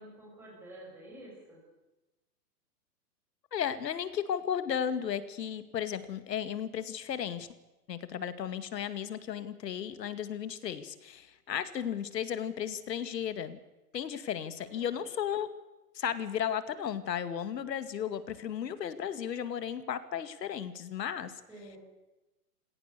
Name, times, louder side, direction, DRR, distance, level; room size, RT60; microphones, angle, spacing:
voice 1, 0.0-1.6 14.6-15.0 21.5-21.8, right 1 dB, 5° right, -4 dB, 5.9 m, -50 dB
voice 2, 3.5-7.5 7.9-13.6 13.9-15.5 15.9-21.3, left 9 dB, 85° left, 11 dB, 2.2 m, -34 dB
28.0 x 17.5 x 6.8 m, 1.0 s
hypercardioid pair, 170°, 48 cm